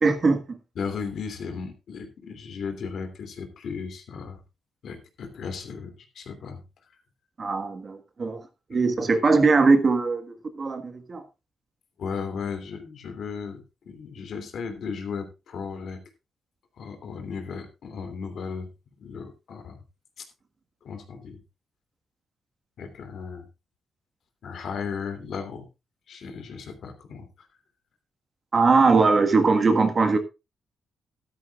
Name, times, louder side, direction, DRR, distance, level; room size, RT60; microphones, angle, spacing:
voice 1, 0.0-0.6 7.4-8.4 8.7-11.2 28.5-30.2, right 4 dB, 35° right, 7 dB, 1.5 m, -21 dB
voice 2, 0.8-4.4 4.8-6.6 6.9-7.0 9.0-9.1 12.0-16.0 16.8-18.7 19.0-19.8 20.2-20.3 20.8-21.4 22.8-23.5 24.4-25.7 26.1-27.5, left 5 dB, 60° left, 7 dB, 2.8 m, -35 dB
14.0 x 13.0 x 2.4 m, 0.26 s
wide cardioid pair, 150°, 0 cm